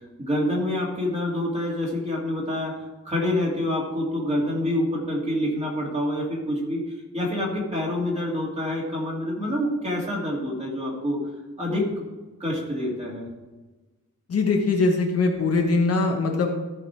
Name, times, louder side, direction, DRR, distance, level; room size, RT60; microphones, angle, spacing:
voice 1, 0.2-2.7 3.0-6.8 7.1-11.2 11.6-12.0 12.4-13.3, left 1 dB, 20° right, -4 dB, 2.8 m, -27 dB
voice 2, 14.3-16.6, left 3 dB, 50° left, 1 dB, 1.3 m, -22 dB
14.0 x 5.3 x 4.7 m, 1.2 s
wide cardioid pair, 175°, 31 cm